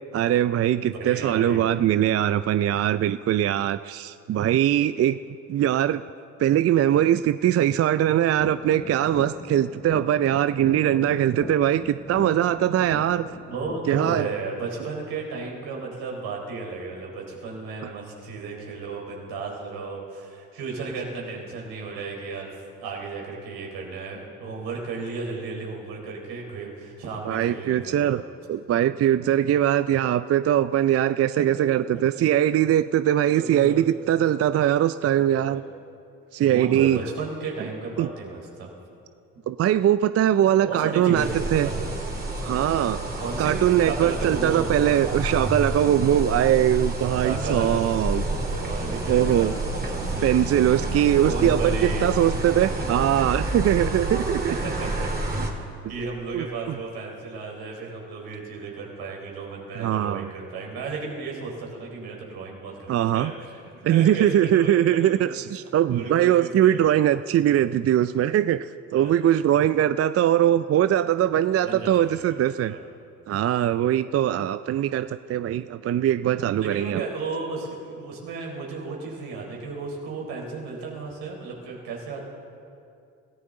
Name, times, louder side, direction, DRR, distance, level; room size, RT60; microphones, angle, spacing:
voice 1, 0.1-5.2 5.5-6.0 6.4-13.3 13.9-14.3 27.3-28.2 28.5-35.6 36.3-37.0 38.0-38.1 39.5-41.7 42.4-43.0 43.4-48.2 49.1-49.5 50.2-54.5 55.4-55.5 56.3-56.5 59.8-60.3 62.9-63.3 63.8-68.7 68.9-72.8 73.3-77.0, right 11 dB, 40° right, 13 dB, 0.4 m, -21 dB
voice 2, 0.8-1.7 13.5-22.6 22.8-28.2 31.5-31.6 33.3-34.0 35.2-35.6 36.4-38.7 40.6-41.9 43.2-44.7 47.2-52.1 52.4-52.7 54.5-55.3 55.9-63.5 63.7-65.3 65.9-66.8 68.9-69.1 71.6-72.8 76.6-82.3, right 4 dB, 75° right, -1 dB, 4.0 m, -34 dB
sound 1, 8.4-14.4, left 2 dB, 25° left, 1.8 m, -39 dB
sound 2, 41.2-55.5, right 2 dB, 25° right, 2.8 m, -29 dB
26.0 x 14.5 x 3.9 m, 2.4 s
hypercardioid pair, 60°, 39 cm